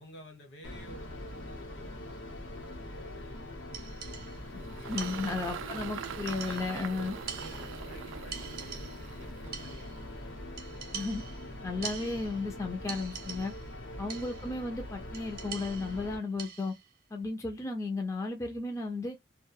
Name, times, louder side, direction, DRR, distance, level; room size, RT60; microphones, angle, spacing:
voice 1, 0.0-4.2 4.6-5.9 6.4-7.0 7.3-10.3 13.8-14.3, left 1 dB, 65° left, 1.0 m, -52 dB
sound 1, 0.6-16.2, left 1 dB, 90° left, 0.8 m, -43 dB
sound 2, 3.7-4.5 5.0-5.7 6.0-6.9 7.3-8.0 8.3-9.2 9.5-10.1 10.6-12.5 12.9-13.7 14.1-14.6 15.1-16.9, right 7 dB, 50° right, 0.7 m, -44 dB
Engine, 3.9-10.5, right 7 dB, 90° right, 0.3 m, -43 dB
voice 2, 4.9-7.2 10.9-11.2 11.6-13.5 14.0-16.8 17.1-19.2, left 3 dB, 15° left, 0.3 m, -34 dB
2.3 x 2.1 x 3.0 m
head